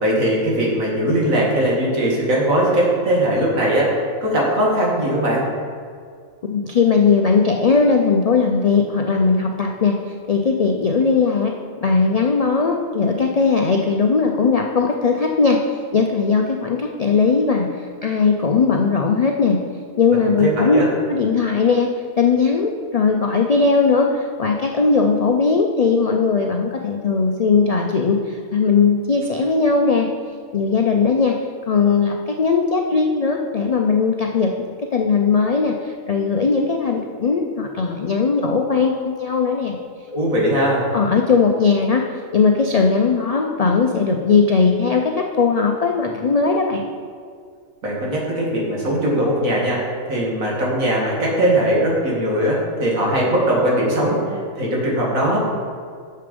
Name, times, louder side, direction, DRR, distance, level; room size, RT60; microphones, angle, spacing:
voice 1, 0.0-3.9 4.2-5.4 20.3-20.9 40.1-40.9 47.8-55.4, right 1 dB, 85° right, -4 dB, 2.3 m, -20 dB
voice 2, 6.5-10.0 10.3-11.5 11.8-15.7 15.9-19.6 20.0-20.8 21.1-30.1 30.5-31.4 31.7-34.5 34.9-39.8 40.9-46.8, left 5 dB, 70° left, 2 dB, 0.3 m, -18 dB
6.7 x 6.7 x 5.2 m, 2.1 s
omnidirectional pair, 1.4 m